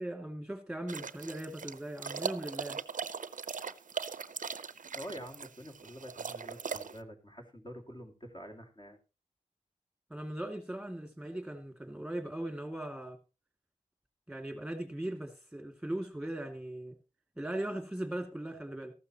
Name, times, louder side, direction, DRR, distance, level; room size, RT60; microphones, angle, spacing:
voice 1, 0.0-2.8 10.1-13.2 14.3-17.0 17.4-18.9, right 1 dB, 5° right, 2.2 m, -39 dB
sound 1, 0.9-7.0, right 6 dB, 75° right, 0.6 m, -39 dB
voice 2, 4.9-9.0, equal, 35° left, 2.3 m, -47 dB
14.0 x 12.0 x 2.9 m
wide cardioid pair, 90°, 14 cm